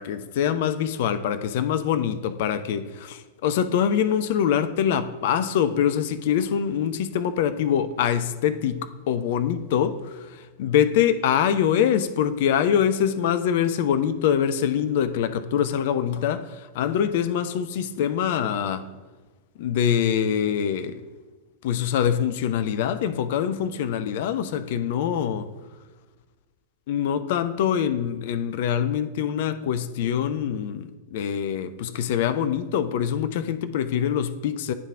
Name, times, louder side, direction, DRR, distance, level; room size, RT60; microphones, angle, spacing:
voice 1, 0.0-18.9 19.6-21.0 21.6-25.5 26.9-34.7, left 9 dB, 50° left, 0.4 m, -24 dB
9.6 x 3.6 x 3.5 m
figure-of-eight pair, 90°, 0 cm